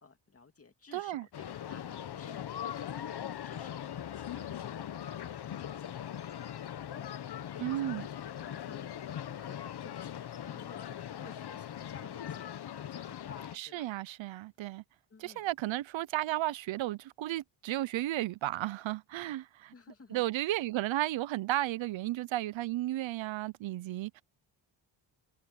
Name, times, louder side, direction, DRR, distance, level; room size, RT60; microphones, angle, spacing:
voice 1, 0.0-3.8 4.2-7.1 7.4-13.9 15.1-15.5 19.7-20.6, left 4 dB, 30° left, 2.5 m, -55 dB
voice 2, 0.9-1.3 7.6-8.1 13.6-14.8 15.2-19.7 20.1-24.2, right 15 dB, 80° right, 0.7 m, -34 dB
sound 1, 1.3-13.6, left 10 dB, 60° left, 1.2 m, -40 dB
cardioid pair, 110°, 45 cm